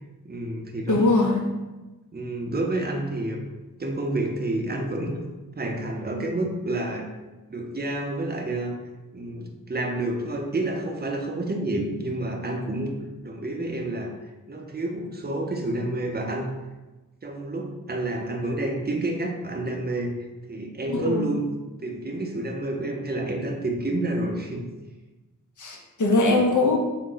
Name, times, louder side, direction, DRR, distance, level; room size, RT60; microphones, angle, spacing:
voice 1, 0.2-1.0 2.1-3.4 3.8-5.2 5.6-7.1 7.5-8.7 9.1-14.1 14.5-16.5 17.2-21.5 21.8-24.7, right 2 dB, 30° right, 2 dB, 0.5 m, -29 dB
voice 2, 0.9-1.4 20.9-21.3 25.6-26.8, left 2 dB, 60° left, 1 dB, 0.7 m, -21 dB
3.9 x 2.1 x 3.8 m, 1.1 s
wide cardioid pair, 65°, 33 cm